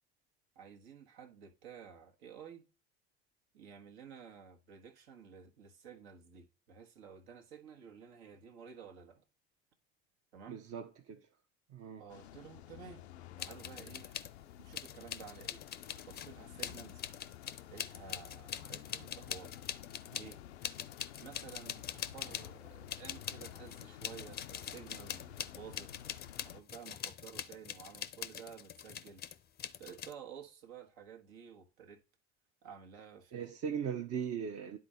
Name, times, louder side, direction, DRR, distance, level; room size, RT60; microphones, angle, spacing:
voice 1, 0.5-2.7 3.5-9.2 10.3-10.6 12.0-13.0 13.4-14.3 14.6-15.6 16.0-17.0 17.7-19.6 20.1-20.4 21.2-26.2 26.4-29.3 29.8-32.0 32.6-33.4, right 7 dB, 70° right, 1.4 m, -52 dB
voice 2, 10.5-11.2 11.7-12.0 33.3-34.8, right 7 dB, 45° right, 0.9 m, -39 dB
sound 1, 12.1-26.6, left 12 dB, 85° left, 0.5 m, -52 dB
sound 2, 13.4-14.3 14.7-22.6 22.9-30.1, left 10 dB, 30° left, 0.5 m, -43 dB
9.8 x 3.9 x 4.2 m
hypercardioid pair, 70°, 32 cm